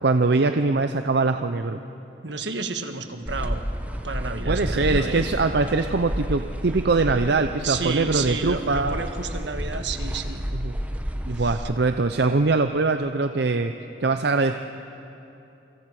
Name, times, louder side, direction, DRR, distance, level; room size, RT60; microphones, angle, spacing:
voice 1, 0.0-1.8 4.5-9.0 10.5-10.8 11.3-13.7 14.0-14.6, right 3 dB, 65° right, 7 dB, 0.7 m, -22 dB
voice 2, 2.2-3.6 4.0-5.3 7.6-10.4 11.4-11.7, right 4 dB, 80° right, 7 dB, 1.5 m, -31 dB
sound 1, 3.3-11.5, equal, 10° right, 1.1 m, -31 dB
28.5 x 25.0 x 4.9 m, 2.9 s
head